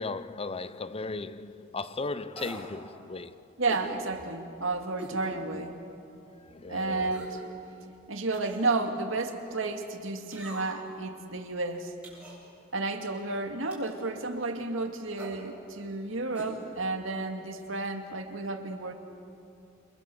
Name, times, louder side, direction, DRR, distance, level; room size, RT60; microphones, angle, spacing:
voice 1, 0.0-3.3 5.5-5.6 6.5-7.1, left 3 dB, 30° left, 14 dB, 0.7 m, -36 dB
sound 1, 2.3-2.7 3.7-3.9 5.0-5.2 5.7-5.8 7.0-7.4 8.3-8.7 10.3-10.9 12.0-12.4 13.7-14.0 15.1-15.4 16.3-16.5 16.8-16.9, right 2 dB, 5° right, 7.6 m, -44 dB
voice 2, 3.6-5.8 6.7-7.4 8.1-11.9 12.7-18.9, right 3 dB, 75° right, 4 dB, 2.3 m, -32 dB
28.5 x 25.0 x 7.8 m, 2.6 s
head